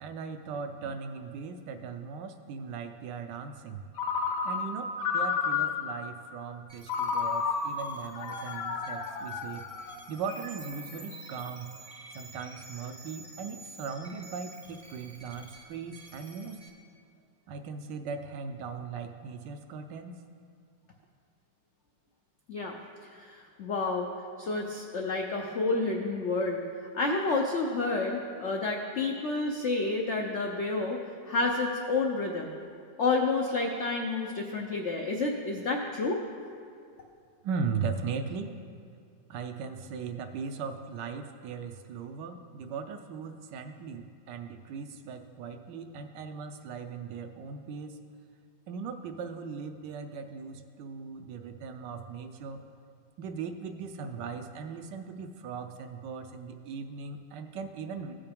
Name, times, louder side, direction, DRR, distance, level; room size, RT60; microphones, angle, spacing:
voice 1, 0.0-3.8 4.4-9.6 10.1-11.7 12.1-16.6 17.5-20.2 37.4-38.6 39.3-48.0 48.7-52.6 53.2-58.1, right 5 dB, 75° right, 7 dB, 1.1 m, -38 dB
Ringtone, 4.0-6.0 6.9-10.2, left 5 dB, 70° left, 1.3 m, -31 dB
sound 1, 6.7-16.7, right 2 dB, 35° right, 0.5 m, -49 dB
voice 2, 23.0-24.1 24.4-26.6 26.9-31.0 31.3-32.6 33.0-36.2, left 3 dB, 90° left, 1 dB, 0.6 m, -29 dB
16.0 x 5.7 x 3.5 m, 2.3 s
omnidirectional pair, 2.1 m